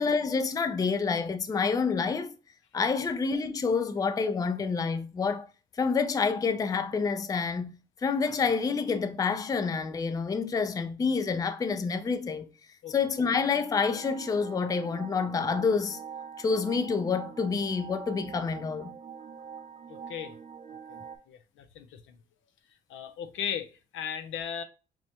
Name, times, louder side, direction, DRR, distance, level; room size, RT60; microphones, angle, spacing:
voice 1, 0.0-2.3 2.7-5.5 5.8-12.5 12.9-16.0 16.4-18.9, left 5 dB, 20° left, 0.4 m, -28 dB
sound 1, 13.9-21.2, right 7 dB, 35° right, 0.5 m, -44 dB
voice 2, 19.9-20.4 20.9-21.0 21.3-22.2 22.9-24.6, left 8 dB, 75° left, 0.6 m, -37 dB
6.0 x 2.1 x 2.7 m
cardioid pair, 90°, 20 cm